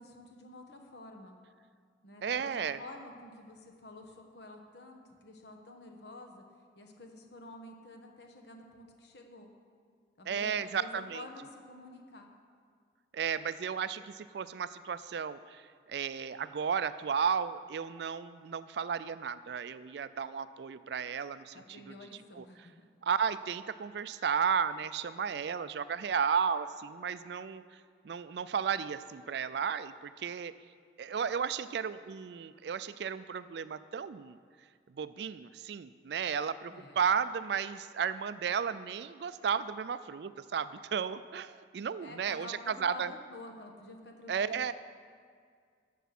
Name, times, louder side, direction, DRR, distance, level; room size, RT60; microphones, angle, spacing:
voice 1, 0.0-1.4 2.0-6.4 6.7-9.5 10.2-12.3 21.5-22.9 36.7-37.0 42.0-44.7, left 2 dB, 65° left, 3 dB, 1.3 m, -49 dB
voice 2, 2.2-2.8 10.3-11.2 13.1-21.8 22.4-22.5 23.0-27.8 28.0-30.5 31.0-34.4 34.9-43.1 44.3-44.7, right 7 dB, 65° right, 14 dB, 0.4 m, -34 dB
14.0 x 8.3 x 5.9 m, 2.1 s
head